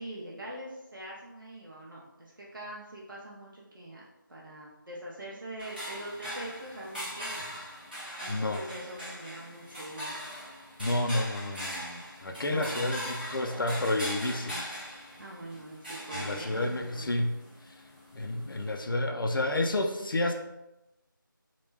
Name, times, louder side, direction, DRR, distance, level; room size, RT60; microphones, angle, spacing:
voice 1, 0.0-4.0 4.3-7.4 8.2-10.2 12.4-12.8 15.2-17.2, right 1 dB, 70° right, -5 dB, 0.7 m, -43 dB
sound 1, 5.6-18.8, equal, 25° right, 0.7 m, -41 dB
voice 2, 8.3-8.6 10.8-14.7 16.1-17.4 17.6-17.7 18.1-20.3, left 1 dB, 75° left, 3 dB, 0.4 m, -30 dB
2.2 x 2.2 x 3.2 m, 0.95 s
figure-of-eight pair, 180°, 11 cm